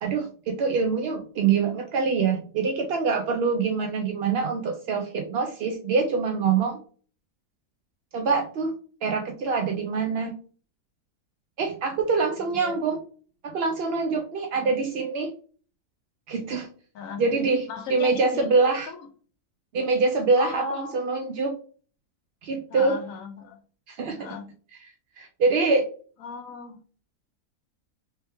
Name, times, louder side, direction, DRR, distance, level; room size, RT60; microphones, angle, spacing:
voice 1, 0.0-6.8 8.1-8.7 9.0-10.4 11.6-13.0 13.4-15.3 16.3-16.7 17.2-18.9 19.7-21.6 22.4-23.0 23.9-24.3 25.2-25.8, right 4 dB, 65° right, 3 dB, 0.6 m, -25 dB
voice 2, 16.9-17.3 17.7-19.1 20.4-21.0 22.7-23.6 24.2-24.5 26.2-26.8, left 4 dB, 70° left, 5 dB, 1.0 m, -36 dB
3.4 x 3.3 x 3.0 m, 0.41 s
omnidirectional pair, 1.5 m